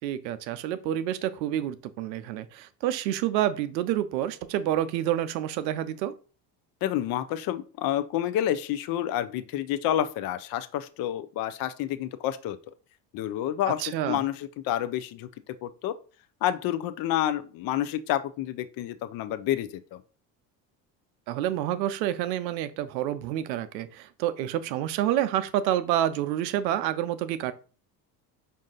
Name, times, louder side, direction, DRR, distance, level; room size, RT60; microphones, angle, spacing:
voice 1, 0.0-6.1 13.8-14.2 21.3-27.5, right 12 dB, 90° right, 13 dB, 0.6 m, -28 dB
voice 2, 6.8-12.6 13.1-15.3 15.6-15.9 16.4-20.0, left 12 dB, 45° left, 12 dB, 0.5 m, -29 dB
5.3 x 2.5 x 3.7 m, 0.38 s
hypercardioid pair, 75°, 50 cm